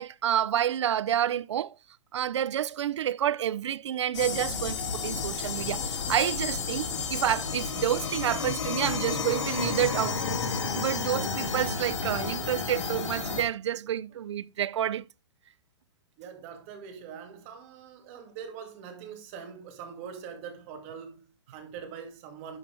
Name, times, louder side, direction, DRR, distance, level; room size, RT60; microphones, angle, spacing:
voice 1, 0.0-1.7 2.1-10.2 10.7-15.0, right 10 dB, 75° right, 0.6 m, -29 dB
sound 1, 4.1-13.4, left 5 dB, 75° left, 2.7 m, -31 dB
voice 2, 16.2-22.6, right 7 dB, 30° right, 2.2 m, -43 dB
11.5 x 7.0 x 3.3 m
hypercardioid pair, 175°, 15 cm